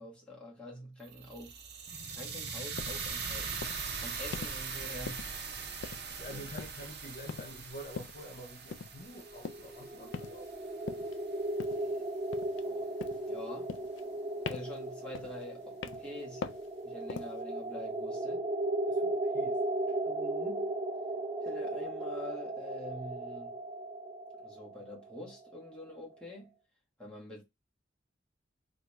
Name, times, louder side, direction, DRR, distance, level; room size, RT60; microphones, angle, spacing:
voice 1, 0.0-1.6 2.1-3.6 4.0-5.3 6.3-6.4 11.6-12.1 12.6-12.9 13.3-13.7 14.5-16.5 16.8-18.4 20.0-20.7 21.4-23.5 24.4-26.5 27.0-27.4, left 1 dB, 5° left, 1.2 m, -46 dB
sound 1, 1.0-11.2, right 5 dB, 60° right, 0.7 m, -41 dB
sound 2, 2.8-3.0 3.6-3.9 4.3-4.6 5.1-5.5 5.8-6.3 6.6-6.9 7.3-7.6 8.0-8.2 8.7-9.0 9.4-9.7 10.1-10.5 10.9-11.2 11.6-11.9 12.3-12.7 13.0-13.3 13.7-14.2 14.5-14.8 15.1-15.5 15.8-16.1 16.4-16.7 17.1-17.4, left 5 dB, 85° left, 0.4 m, -42 dB
voice 2, 6.0-10.5 18.9-19.6 19.9-20.0, equal, 50° left, 0.7 m, -48 dB
sound 3, 9.2-26.1, right 2 dB, 20° right, 0.6 m, -36 dB
2.9 x 2.6 x 3.3 m
head